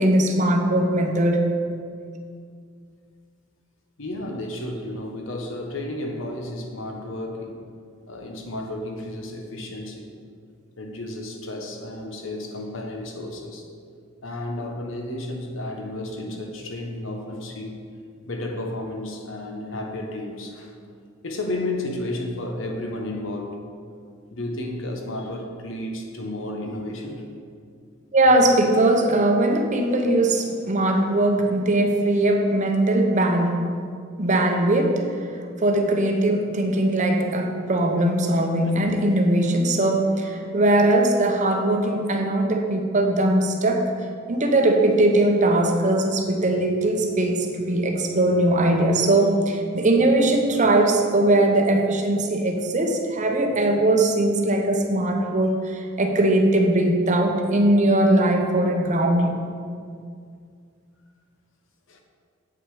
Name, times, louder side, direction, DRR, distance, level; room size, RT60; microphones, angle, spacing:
voice 1, 0.0-1.5 28.1-33.6 34.2-35.3 35.6-43.9 44.3-59.5, right 1 dB, 35° right, 3 dB, 0.8 m, -20 dB
voice 2, 4.0-7.6 8.1-10.1 10.8-13.7 14.2-17.8 18.3-20.7 21.2-23.6 24.3-27.2 38.6-38.9 61.9-62.0, left 1 dB, 65° left, 3 dB, 1.1 m, -32 dB
8.1 x 6.1 x 4.9 m, 2.2 s
head